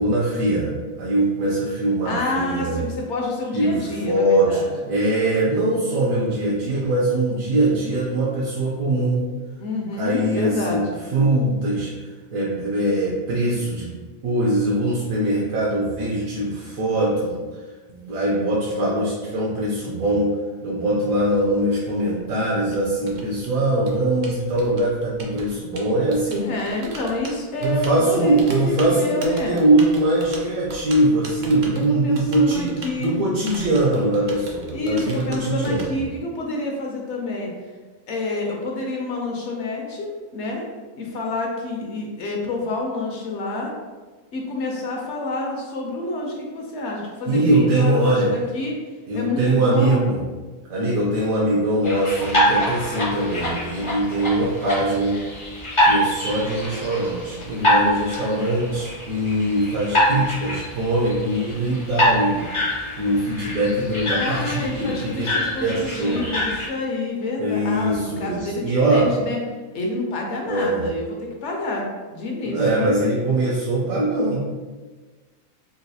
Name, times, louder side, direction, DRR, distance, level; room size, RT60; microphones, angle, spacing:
voice 1, 0.0-2.8 3.5-4.6 4.9-9.2 10.0-10.9 11.1-11.9 12.3-13.9 14.2-17.3 17.9-20.4 20.6-26.5 27.6-32.7 33.0-35.8 47.3-48.3 49.1-50.2 50.7-55.2 55.8-62.5 63.0-65.3 65.6-66.2 67.4-69.1 70.5-70.8 72.5-74.4, right 1 dB, 80° right, -5 dB, 1.0 m, -22 dB
voice 2, 2.0-4.9 9.6-11.0 26.4-29.6 31.7-33.2 34.7-37.5 38.1-40.7 41.0-43.7 44.3-48.8 49.1-50.1 64.2-69.4 69.7-72.9, left 2 dB, 65° left, 0 dB, 0.8 m, -28 dB
Typing, 21.2-35.9, right 2 dB, 65° right, 0.4 m, -40 dB
sound 1, 51.8-66.7, equal, 35° left, 0.5 m, -25 dB
3.9 x 2.3 x 2.7 m, 1.3 s
omnidirectional pair, 1.4 m